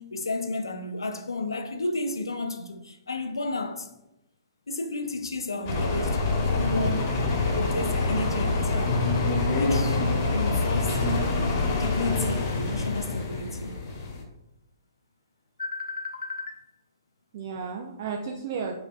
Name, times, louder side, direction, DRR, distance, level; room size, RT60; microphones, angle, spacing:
voice 1, 0.0-3.9 4.7-9.0 9.6-11.0 11.8-13.8 15.6-16.6, left 2 dB, 85° left, 0.5 m, -32 dB
voice 2, 5.5-6.1 17.3-18.8, right 5 dB, 45° right, 0.4 m, -34 dB
sound 1, 5.6-14.2, left 3 dB, 45° left, 0.9 m, -26 dB
Explosion, 7.9-10.9, equal, 25° right, 1.3 m, -44 dB
4.9 x 2.5 x 2.3 m
figure-of-eight pair, 125°, 2 cm